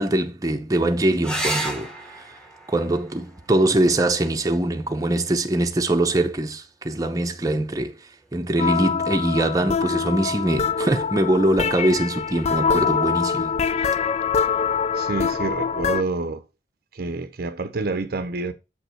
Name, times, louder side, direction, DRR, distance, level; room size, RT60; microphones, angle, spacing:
voice 1, 0.0-2.2 2.7-13.6, right 1 dB, 20° right, 0.7 m, -23 dB
sound 1, 1.2-6.2 8.1-8.8 12.2-12.3 12.7-12.8, right 1 dB, 5° left, 1.2 m, -34 dB
sound 2, 8.6-16.0, left 6 dB, 35° left, 0.3 m, -24 dB
voice 2, 14.9-16.4 16.9-18.5, right 3 dB, 55° right, 0.6 m, -28 dB
7.1 x 5.3 x 4.4 m
head